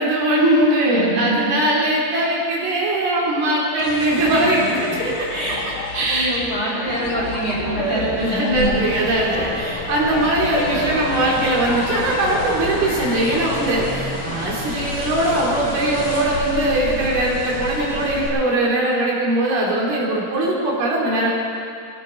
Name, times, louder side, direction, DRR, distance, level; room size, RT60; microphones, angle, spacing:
voice 1, 0.0-4.8 5.9-6.3 7.6-21.3, right 1 dB, 65° right, -4 dB, 4.4 m, -20 dB
voice 2, 0.8-1.4 4.3-4.5 5.0-5.6 6.1-8.0 8.3-8.8, equal, 25° left, -7 dB, 4.2 m, -25 dB
sound 1, 3.8-14.4, left 5 dB, 85° left, 3.5 m, -33 dB
sound 2, 8.5-18.3, left 1 dB, 45° left, 3.8 m, -29 dB
20.5 x 15.5 x 4.2 m, 2.4 s
omnidirectional pair, 4.8 m